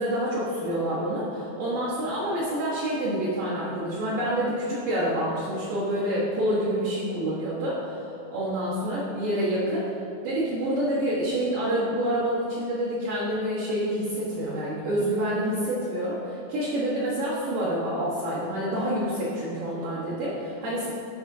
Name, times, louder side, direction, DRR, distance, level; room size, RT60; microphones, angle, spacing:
voice 1, 0.0-9.9 10.2-20.9, right 1 dB, 65° right, -10 dB, 2.3 m, -27 dB
12.5 x 5.3 x 2.7 m, 2.7 s
omnidirectional pair, 5.2 m